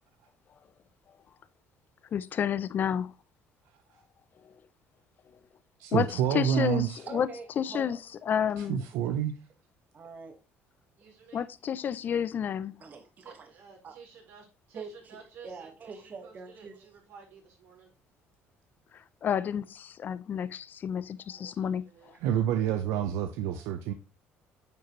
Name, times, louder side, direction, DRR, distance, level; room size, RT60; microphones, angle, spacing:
voice 1, 2.1-3.1 5.9-7.3 7.6-8.0 8.3-8.8 11.3-12.7 19.2-21.8, left 8 dB, 45° left, 0.5 m, -30 dB
voice 2, 5.8-7.0 8.6-9.3 22.2-23.9, right 10 dB, 85° right, 0.7 m, -28 dB
voice 3, 7.1-8.0 8.7-9.0 9.9-10.4 12.8-13.5 13.8-14.0 14.7-16.9 22.1-22.2, right 5 dB, 40° right, 1.5 m, -45 dB
voice 4, 11.0-11.5 13.2-17.9 21.3-22.2, right 6 dB, 65° right, 4.1 m, -53 dB
9.2 x 5.1 x 3.0 m
cardioid pair, 115°, 4 cm